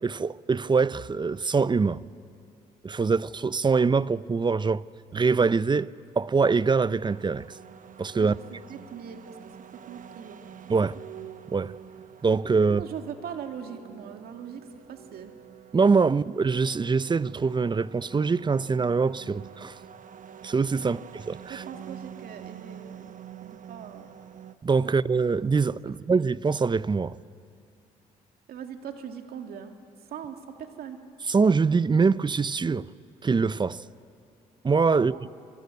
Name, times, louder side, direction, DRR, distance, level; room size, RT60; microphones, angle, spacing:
voice 1, 0.0-2.0 2.8-4.8 5.1-5.9 6.2-7.4 8.0-8.3 10.7-11.0 11.5-11.7 12.2-12.8 15.7-19.8 20.4-21.6 24.6-27.2 31.3-32.9 33.2-33.8 34.6-35.1, right 4 dB, 30° right, 0.6 m, -24 dB
sound 1, 7.0-24.6, right 9 dB, 55° right, 1.1 m, -47 dB
voice 2, 8.7-9.4 9.9-10.4 10.8-10.9 12.6-15.3 20.8-21.1 21.5-23.1 23.4-24.1 24.8-24.9 28.5-29.7 30.1-31.0 34.9-35.2, right 8 dB, 70° right, 2.4 m, -40 dB
26.0 x 22.5 x 9.6 m
supercardioid pair, 60°, 16 cm